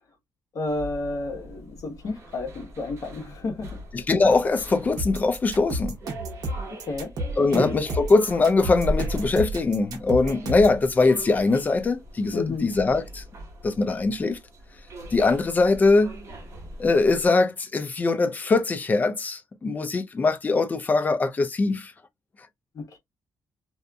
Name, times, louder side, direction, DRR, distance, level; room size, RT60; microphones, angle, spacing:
voice 1, 0.5-3.8 6.9-7.1 7.5-7.7 12.3-12.7 22.7-23.0, left 2 dB, 50° left, 1.1 m, -31 dB
sound 1, 0.7-17.3, equal, 45° right, 1.1 m, -39 dB
voice 2, 3.9-6.0 7.4-13.2 13.6-14.4 15.1-16.2 16.8-21.9, left 3 dB, 25° left, 0.4 m, -22 dB
sound 2, 5.0-10.8, right 1 dB, 60° right, 0.9 m, -31 dB
2.6 x 2.5 x 2.3 m
cardioid pair, 145°, 7 cm